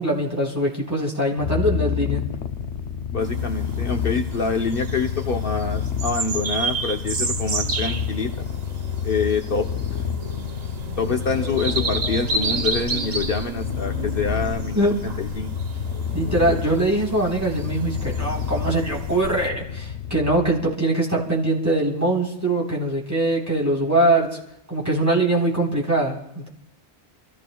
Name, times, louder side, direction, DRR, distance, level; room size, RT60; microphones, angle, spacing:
voice 1, 0.0-2.2 14.7-14.9 16.1-24.4 24.7-26.5, right 1 dB, 15° right, -3 dB, 3.9 m, -22 dB
Purr, 1.4-20.7, left 7 dB, 85° left, 1.0 m, -29 dB
voice 2, 3.1-8.5 9.0-10.0 11.0-15.5, left 4 dB, 60° left, 4 dB, 1.0 m, -26 dB
sound 1, 3.2-19.5, right 4 dB, 45° right, 0.8 m, -32 dB
29.5 x 15.5 x 2.3 m, 0.81 s
omnidirectional pair, 1.1 m